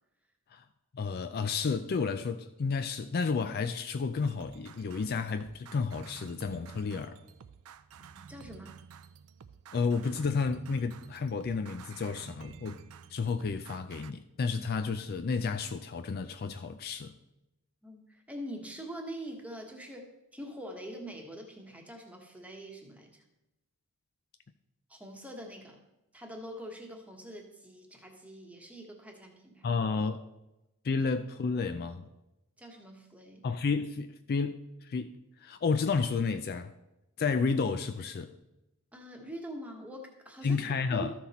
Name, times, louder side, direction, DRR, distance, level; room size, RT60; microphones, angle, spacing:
voice 1, 0.9-7.2 9.7-12.8 13.1-17.1 29.6-30.2 30.8-32.1 33.4-35.1 35.4-36.7 37.2-38.3 40.4-41.1, left 4 dB, 45° left, 0.4 m, -31 dB
sound 1, 4.2-14.1, right 6 dB, 70° right, 0.4 m, -52 dB
voice 2, 8.0-8.7 17.8-23.2 24.9-25.8 26.1-29.7 32.6-33.4 38.9-40.6 40.9-41.1, right 1 dB, 5° right, 1.2 m, -44 dB
13.0 x 5.9 x 4.2 m
head